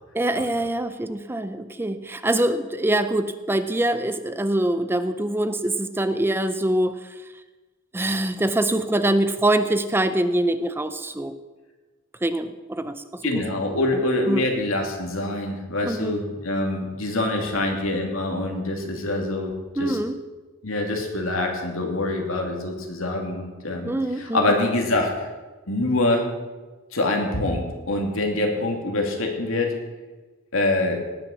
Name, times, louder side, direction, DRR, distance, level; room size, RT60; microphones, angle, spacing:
voice 1, 0.1-7.0 7.9-11.3 12.2-13.2 13.9-14.0 14.3-14.5 15.8-16.1 17.4-17.5 19.8-20.2 23.8-24.5, right 1 dB, 10° right, 11 dB, 0.5 m, -24 dB
voice 2, 13.2-20.0 20.6-25.3 25.7-26.3 26.9-29.7 30.5-31.0, left 2 dB, 80° left, 2 dB, 2.6 m, -25 dB
18.5 x 6.6 x 7.2 m, 1.3 s
head